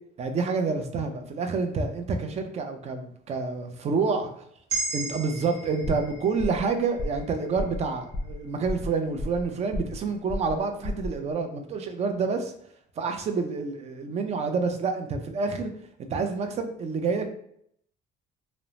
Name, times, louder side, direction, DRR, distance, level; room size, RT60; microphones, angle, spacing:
voice 1, 0.2-4.3 4.9-12.5 13.0-15.7 16.0-17.3, right 4 dB, 35° right, 6 dB, 0.4 m, -28 dB
sound 1, 4.7-9.0, right 3 dB, 85° right, 0.7 m, -37 dB
sound 2, 5.8-6.1 6.4-6.7 7.0-7.3 7.5-7.8 8.1-8.4 8.6-9.5 9.7-10.0 10.3-10.6 10.8-11.1, left 2 dB, 20° left, 0.5 m, -32 dB
2.6 x 2.0 x 3.0 m, 0.69 s
cardioid pair, 120°, 19 cm